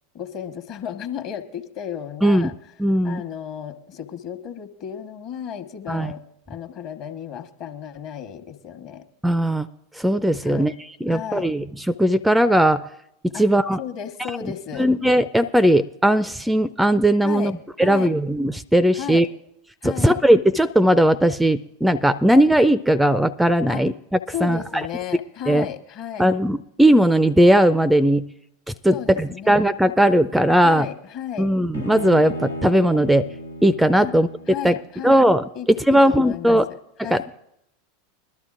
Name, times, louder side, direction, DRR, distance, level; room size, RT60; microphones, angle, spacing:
voice 1, 0.1-2.5 3.0-9.1 10.4-10.7 11.1-11.5 13.3-13.4 13.8-14.9 17.2-18.1 18.9-19.3 19.8-20.2 23.7-23.8 24.3-26.3 28.9-29.6 30.6-31.5 34.0-34.1 34.5-35.2 35.5-37.2, left 9 dB, 50° left, 7 dB, 1.2 m, -34 dB
voice 2, 2.8-3.2 5.9-6.1 9.2-9.7 9.9-12.8 13.4-13.8 14.4-19.3 19.8-23.9 24.4-24.9 25.5-25.7 26.2-28.3 28.8-30.9 31.4-33.3 33.6-34.3 34.6-34.7 35.0-35.5 35.9-36.7 37.0-37.4, right 1 dB, 5° right, 16 dB, 0.4 m, -18 dB
Bowed string instrument, 31.7-35.0, equal, 90° left, 0.9 m, -35 dB
21.0 x 12.5 x 2.5 m, 0.79 s
figure-of-eight pair, 85°, 0 cm